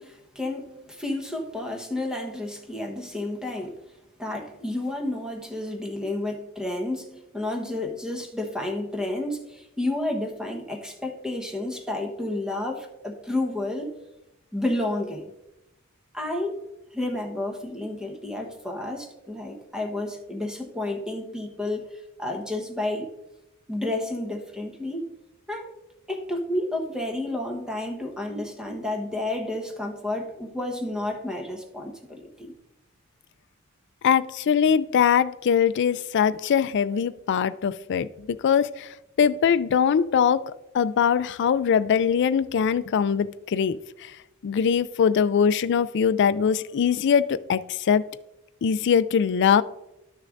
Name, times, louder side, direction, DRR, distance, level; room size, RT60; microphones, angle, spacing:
voice 1, 0.0-3.8 4.2-13.9 14.5-15.2 16.1-16.6 16.9-23.1 23.7-25.1 25.5-25.7 26.1-32.5, left 1 dB, 5° right, 2 dB, 1.1 m, -31 dB
voice 2, 34.0-38.9 39.2-44.1 44.4-48.0 48.6-49.6, left 7 dB, 55° left, 14 dB, 0.3 m, -22 dB
12.0 x 6.5 x 2.6 m, 0.92 s
head